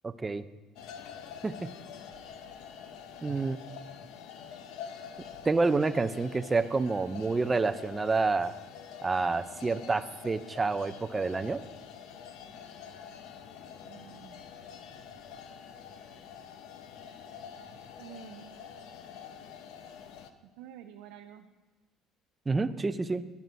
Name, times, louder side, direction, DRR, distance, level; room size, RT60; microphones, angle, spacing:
voice 1, 0.0-0.4 1.4-1.7 3.2-3.6 5.5-8.5 9.0-11.6 22.5-23.3, right 3 dB, 15° right, 12 dB, 0.4 m, -28 dB
sound 1, 0.8-20.3, left 7 dB, 70° left, 0.6 m, -46 dB
voice 2, 13.8-14.4 18.0-18.7 20.6-21.5, right 9 dB, 85° right, 5 dB, 0.4 m, -49 dB
9.4 x 5.1 x 5.6 m, 1.2 s
cardioid pair, 130°, 0 cm